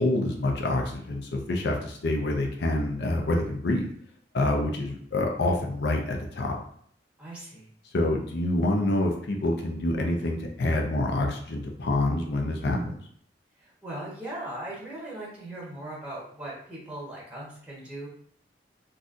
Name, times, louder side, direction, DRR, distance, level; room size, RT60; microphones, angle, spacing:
voice 1, 0.0-3.9 4.3-6.6 7.9-13.0, left 1 dB, 65° left, 1 dB, 0.5 m, -27 dB
voice 2, 7.2-7.7 13.6-18.1, right 1 dB, 5° right, -5 dB, 1.0 m, -39 dB
4.0 x 2.4 x 2.5 m, 0.63 s
head